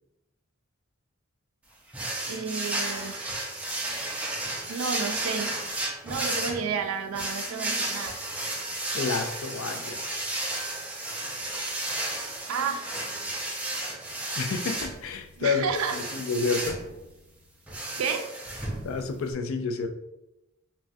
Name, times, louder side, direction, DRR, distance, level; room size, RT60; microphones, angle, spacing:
sound 1, 1.9-19.3, right 1 dB, 5° right, 0.4 m, -33 dB
voice 1, 2.3-3.2 4.7-5.6 6.0-8.1 12.5-12.9 15.4-16.0 18.0-18.3, right 6 dB, 80° right, 6 dB, 0.4 m, -31 dB
voice 2, 8.9-10.1 14.4-15.7 16.0-16.8 18.8-19.9, left 4 dB, 70° left, 7 dB, 0.3 m, -29 dB
3.4 x 2.1 x 2.5 m, 0.89 s
head